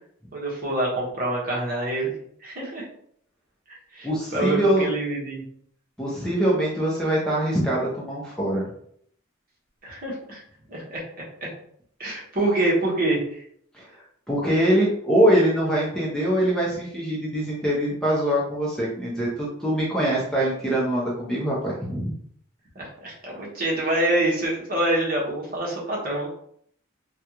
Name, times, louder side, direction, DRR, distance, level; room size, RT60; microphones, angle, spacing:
voice 1, 0.3-2.1 2.4-2.9 3.7-5.4 9.8-10.4 10.7-11.5 12.0-13.4 22.7-26.3, right 1 dB, 45° right, -4 dB, 1.2 m, -26 dB
voice 2, 4.0-4.9 6.0-8.7 13.7-22.1, right 1 dB, 5° left, -5 dB, 0.7 m, -23 dB
3.4 x 2.3 x 2.9 m, 0.65 s
head